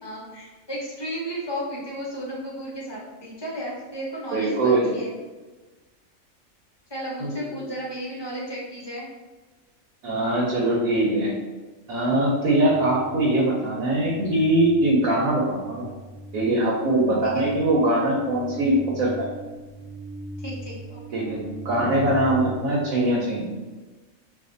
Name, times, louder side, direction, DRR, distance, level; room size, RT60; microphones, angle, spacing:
voice 1, 0.0-5.1 6.9-9.1 17.2-17.5 20.4-21.0, equal, 25° left, -5 dB, 0.7 m, -34 dB
voice 2, 4.3-4.9 7.2-7.4 10.0-11.3 11.9-15.9 16.3-19.3 21.1-23.5, right 1 dB, 85° right, -4 dB, 1.1 m, -22 dB
sound 1, 12.6-22.6, right 1 dB, 65° right, 0.5 m, -40 dB
2.5 x 2.4 x 3.8 m, 1.2 s
omnidirectional pair, 1.4 m